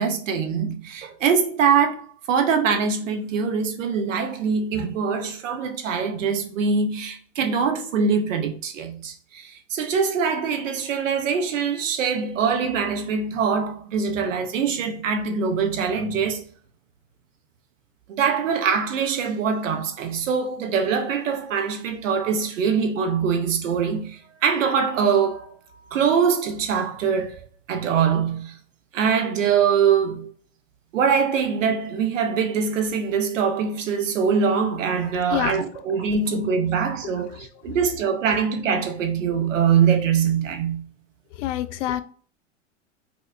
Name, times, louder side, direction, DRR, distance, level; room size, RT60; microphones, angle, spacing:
voice 1, 0.0-16.4 18.1-25.6 25.9-27.4 27.7-28.6 28.9-30.3 30.9-40.9, right 6 dB, 80° right, 0.8 m, -23 dB
voice 2, 41.3-42.0, left 12 dB, 65° left, 0.5 m, -26 dB
4.7 x 2.1 x 2.5 m
hypercardioid pair, 95°, 38 cm